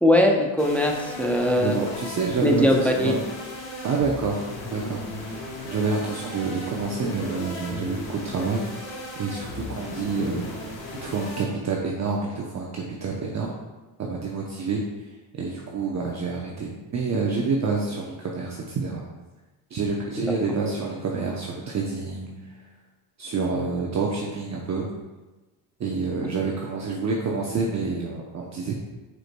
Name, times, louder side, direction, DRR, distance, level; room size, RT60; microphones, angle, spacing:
voice 1, 0.0-1.8 2.4-3.1, left 1 dB, 5° left, 1 dB, 0.5 m, -20 dB
sound 1, 0.6-11.4, left 2 dB, 70° left, 1.4 m, -36 dB
voice 2, 1.6-3.2 3.8-4.4 4.7-5.4 5.6-8.7 9.2-10.5 10.9-13.6 14.0-14.8 15.3-19.0 19.7-22.5 23.2-24.9 25.8-28.8, right 4 dB, 35° right, -2 dB, 0.7 m, -28 dB
4.8 x 4.7 x 2.2 m, 1.2 s
supercardioid pair, 85°, 47 cm